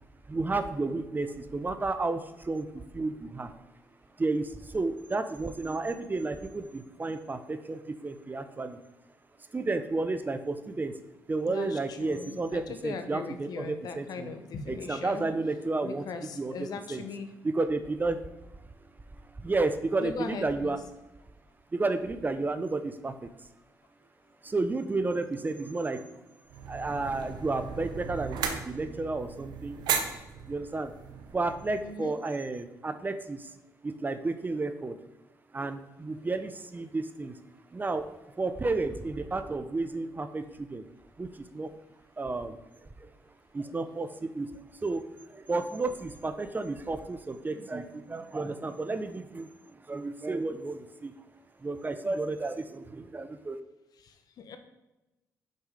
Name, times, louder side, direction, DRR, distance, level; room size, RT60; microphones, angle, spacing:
voice 1, 0.3-3.5 4.2-8.8 9.5-10.9 11.3-14.3 14.7-16.0 16.4-17.0 17.4-18.2 19.4-20.8 21.7-23.3 24.4-26.1 26.7-29.8 30.5-30.9 31.3-33.5 33.8-35.0 35.5-37.3 37.7-40.8 41.2-41.7 42.2-42.6 43.0-43.1 43.5-44.5 44.8-45.1 45.3-49.5 49.9-51.1 51.6-53.6, right 3 dB, 25° right, 10 dB, 0.7 m, -32 dB
voice 2, 11.5-15.2 15.8-17.3 20.0-20.8 31.8-32.2 54.0-54.6, left 5 dB, 70° left, 8 dB, 0.9 m, -39 dB
sound 1, 26.5-31.9, right 7 dB, 85° right, 0.8 m, -36 dB
6.7 x 5.5 x 4.8 m, 1.0 s
cardioid pair, 75°, 7 cm